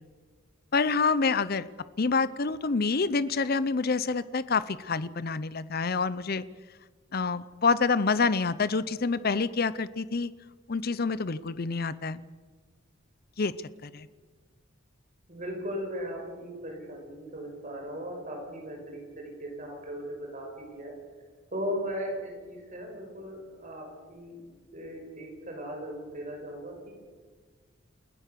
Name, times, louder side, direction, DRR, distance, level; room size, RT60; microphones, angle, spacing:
voice 1, 0.7-1.7 2.0-6.4 7.1-10.3 10.7-12.2 13.4-13.5 13.8-14.1, left 4 dB, 45° left, 16 dB, 0.7 m, -27 dB
voice 2, 15.3-21.0 21.5-24.4 24.7-26.9, equal, 40° right, 1 dB, 6.0 m, -37 dB
29.0 x 15.5 x 6.8 m, 1.5 s
head